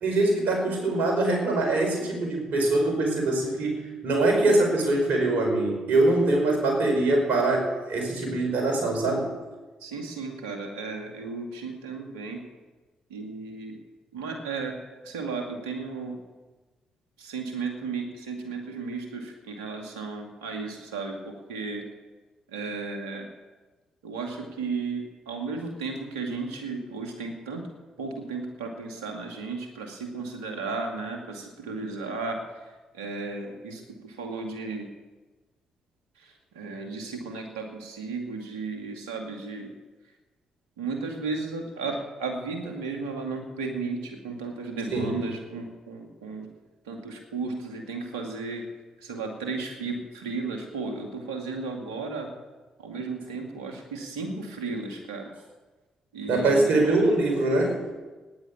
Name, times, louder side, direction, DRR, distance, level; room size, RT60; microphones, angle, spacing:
voice 1, 0.0-9.3 44.9-45.1 56.3-57.8, right 2 dB, 60° right, 2 dB, 5.0 m, -23 dB
voice 2, 9.8-12.4 13.1-13.8 14.1-14.8 15.0-16.2 17.2-21.8 22.5-23.3 24.0-27.6 28.0-32.4 32.9-34.9 36.2-39.7 40.8-46.5 46.9-48.7 49.0-52.3 52.8-55.3 56.1-56.8, right 4 dB, 80° right, 3 dB, 2.3 m, -34 dB
15.0 x 10.5 x 8.6 m, 1.2 s
figure-of-eight pair, 40°, 3 cm